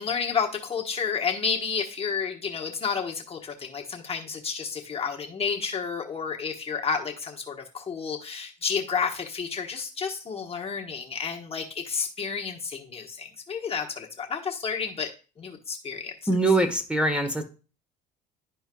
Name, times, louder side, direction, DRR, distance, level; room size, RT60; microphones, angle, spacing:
voice 1, 0.0-15.1 15.4-16.1, left 6 dB, 30° left, 1 dB, 1.2 m, -31 dB
voice 2, 16.3-17.4, right 2 dB, 5° right, 6 dB, 1.3 m, -23 dB
11.5 x 4.5 x 2.3 m, 0.33 s
supercardioid pair, 95°, 19 cm